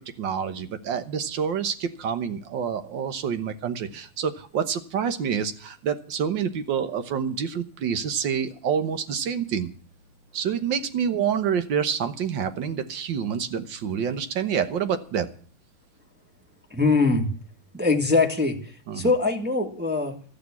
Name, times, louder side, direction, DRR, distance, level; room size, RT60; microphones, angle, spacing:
voice 1, 0.2-9.7 10.3-15.3 18.9-19.1, right 7 dB, 65° right, 9 dB, 1.7 m, -27 dB
voice 2, 16.7-17.3 17.7-18.6 18.9-20.2, left 3 dB, 5° right, 2 dB, 1.2 m, -22 dB
13.5 x 6.8 x 9.5 m, 0.44 s
omnidirectional pair, 2.3 m